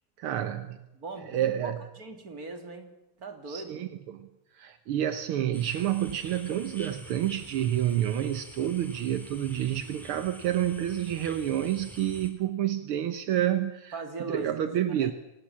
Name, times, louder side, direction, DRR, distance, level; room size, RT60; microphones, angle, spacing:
voice 1, 0.2-0.8 1.2-1.8 3.5-4.3 4.5-14.0 14.3-15.1, right 11 dB, 75° right, 10 dB, 1.9 m, -29 dB
voice 2, 0.9-1.7 2.0-2.9 3.2-3.8 13.9-15.1, right 3 dB, 40° right, 6 dB, 3.3 m, -39 dB
sound 1, 5.5-12.3, equal, ahead, 3.2 m, -47 dB
25.5 x 19.5 x 7.3 m, 0.94 s
omnidirectional pair, 2.4 m